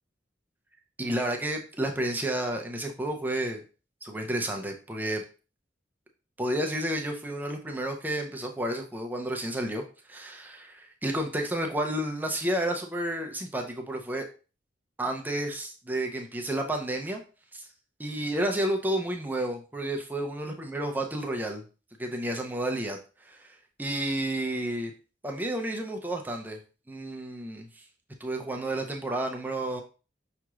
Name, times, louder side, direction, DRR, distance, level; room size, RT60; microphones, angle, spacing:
voice 1, 1.0-3.6 4.0-5.2 6.4-9.8 10.1-14.3 15.0-17.2 17.5-17.7 18.0-21.6 22.0-24.9 25.2-26.6 26.9-27.8 28.2-29.8, right 1 dB, 10° right, 2 dB, 0.5 m, -31 dB
5.7 x 3.0 x 2.3 m, 0.34 s
head